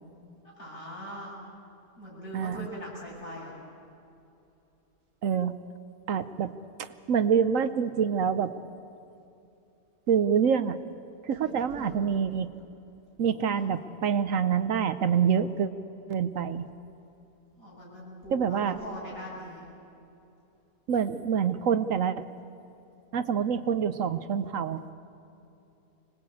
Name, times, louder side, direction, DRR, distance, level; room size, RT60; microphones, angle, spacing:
voice 1, 0.4-1.4 2.0-3.6 11.4-12.1 13.3-13.7 17.6-19.6, equal, 70° left, -5 dB, 8.4 m, -41 dB
voice 2, 2.3-2.7 5.2-5.5 6.1-6.5 6.8-8.5 10.1-10.8 11.2-12.5 13.2-15.7 16.1-16.7 18.3-18.8 20.9-22.3 23.1-24.8, right 7 dB, 65° right, 12 dB, 1.1 m, -26 dB
25.0 x 19.5 x 8.5 m, 2.8 s
omnidirectional pair, 1.5 m